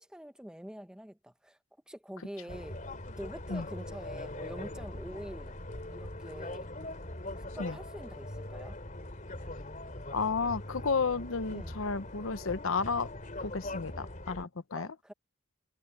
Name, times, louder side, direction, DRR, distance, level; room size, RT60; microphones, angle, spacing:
voice 1, 0.0-1.6 1.9-2.8 3.2-5.6 5.9-6.7 7.5-8.8 11.5-11.8 14.8-15.1, equal, 5° right, 1.0 m, -45 dB
sound 1, 2.5-14.4, left 1 dB, 40° left, 3.3 m, -42 dB
voice 2, 10.1-13.1 13.4-14.9, left 4 dB, 75° left, 0.9 m, -32 dB
head